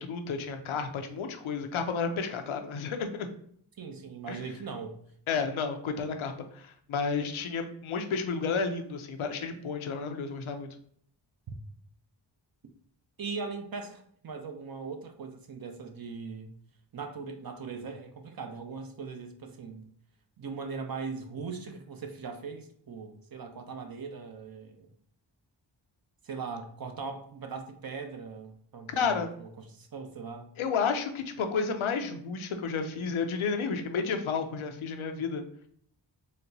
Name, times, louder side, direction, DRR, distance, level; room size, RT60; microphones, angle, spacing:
voice 1, 0.0-3.3 4.3-4.4 5.3-10.7 28.9-29.3 30.6-35.4, left 5 dB, 85° left, 6 dB, 0.6 m, -31 dB
voice 2, 3.8-5.0 13.2-16.5 16.9-19.9 20.4-24.9 26.2-30.5, right 5 dB, 50° right, 5 dB, 0.7 m, -40 dB
4.1 x 2.1 x 2.6 m, 0.62 s
cardioid pair, 50°, 47 cm